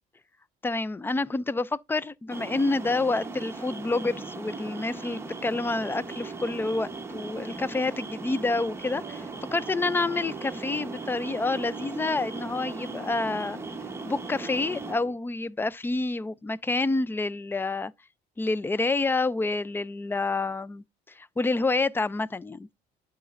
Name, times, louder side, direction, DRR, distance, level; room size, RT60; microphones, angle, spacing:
voice 1, 0.6-9.3 9.5-13.6 14.1-17.9 18.4-20.8 21.2-22.7, left 3 dB, 15° left, 0.4 m, -28 dB
sound 1, 2.3-15.0, right 3 dB, 15° right, 0.9 m, -38 dB
Singing, 5.6-15.2, right 8 dB, 40° right, 0.8 m, -48 dB
12.0 x 4.1 x 2.5 m
cardioid pair, 110°, 17 cm